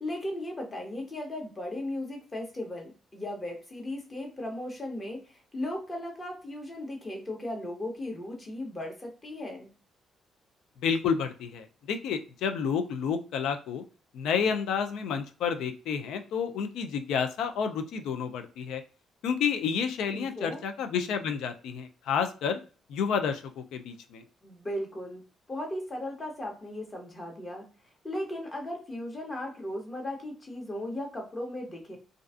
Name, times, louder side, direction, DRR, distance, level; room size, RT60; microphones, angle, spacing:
voice 1, 0.0-9.7 20.1-20.6 24.4-27.7 28.0-32.0, left 1 dB, 30° left, 1 dB, 0.9 m, -36 dB
voice 2, 10.8-13.8 14.1-18.8 19.2-22.6 22.9-24.2, left 6 dB, 85° left, 8 dB, 0.4 m, -30 dB
2.4 x 2.3 x 2.4 m, 0.36 s
cardioid pair, 90°, 0 cm